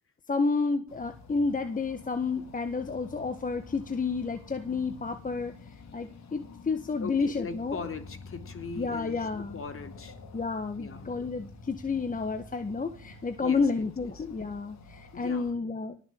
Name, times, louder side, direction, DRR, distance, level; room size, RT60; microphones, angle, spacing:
voice 1, 0.3-5.5 5.9-7.8 8.8-9.6 10.3-16.0, left 4 dB, 25° left, 8 dB, 1.6 m, -30 dB
sound 1, 0.9-15.5, left 3 dB, 65° left, 3.7 m, -48 dB
voice 2, 7.0-10.2 10.8-11.1 13.4-13.7 14.0-14.2 15.1-15.5, left 4 dB, 45° left, 8 dB, 3.3 m, -40 dB
19.0 x 7.2 x 8.8 m, 0.39 s
cardioid pair, 90°, 30 cm